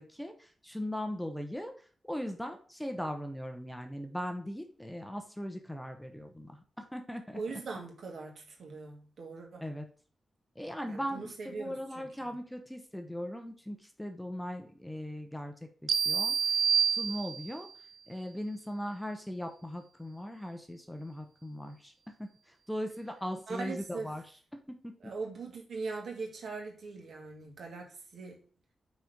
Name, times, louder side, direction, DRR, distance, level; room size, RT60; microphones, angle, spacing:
voice 1, 0.0-1.7 2.1-6.6 6.9-7.4 9.6-9.9 10.6-15.5 15.8-16.3 16.9-17.7 18.1-21.9 22.2-22.3 22.7-24.2, equal, 5° left, 0.8 m, -39 dB
voice 2, 7.3-9.6 10.8-12.3 23.5-24.1 25.0-28.4, right 4 dB, 65° right, 2.2 m, -41 dB
sound 1, 15.9-17.7, right 7 dB, 85° right, 0.6 m, -28 dB
6.1 x 4.3 x 5.1 m
wide cardioid pair, 165°, 0 cm